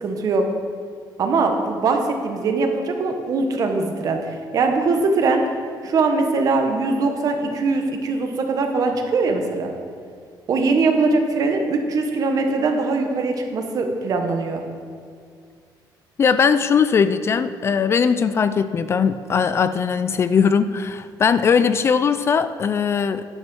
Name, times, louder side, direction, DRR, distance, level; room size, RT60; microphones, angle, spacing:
voice 1, 0.0-0.5 1.2-5.4 5.8-9.7 10.5-14.6, right 3 dB, 50° right, 4 dB, 1.2 m, -21 dB
voice 2, 16.2-23.3, left 6 dB, 35° left, 12 dB, 0.3 m, -19 dB
11.0 x 6.3 x 6.3 m, 2.2 s
cardioid pair, 155°, 8 cm